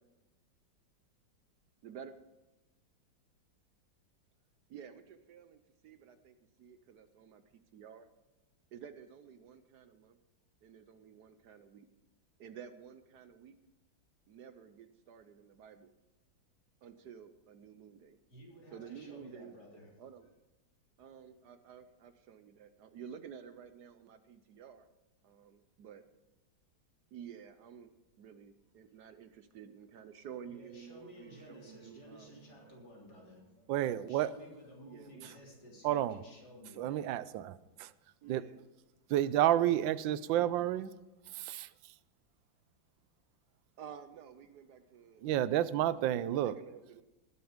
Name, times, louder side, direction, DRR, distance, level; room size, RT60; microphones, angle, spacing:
voice 1, 1.8-2.1 4.7-7.4 7.7-8.1 8.7-10.2 10.6-11.9 12.4-13.6 14.3-15.9 16.8-18.2 18.7-19.5 20.0-20.3 21.0-24.9 25.2-26.0 27.1-27.9 28.2-32.3 34.8-35.3 38.2-38.6 39.6-39.9 43.8-47.0, right 8 dB, 65° right, 10 dB, 1.2 m, -51 dB
voice 2, 18.3-19.9 28.9-29.0 30.4-33.7 34.1-37.0, equal, 60° left, -3 dB, 4.0 m, -54 dB
Bowed string instrument, 31.0-34.8, right 9 dB, 10° right, 2.8 m, -63 dB
voice 3, 33.7-34.3 35.2-35.3 35.8-36.2 36.8-37.9 38.3-38.4 39.1-40.9 41.3-41.9 45.2-46.6, right 12 dB, 85° right, 17 dB, 1.3 m, -31 dB
19.5 x 7.0 x 5.1 m, 1.0 s
omnidirectional pair, 2.0 m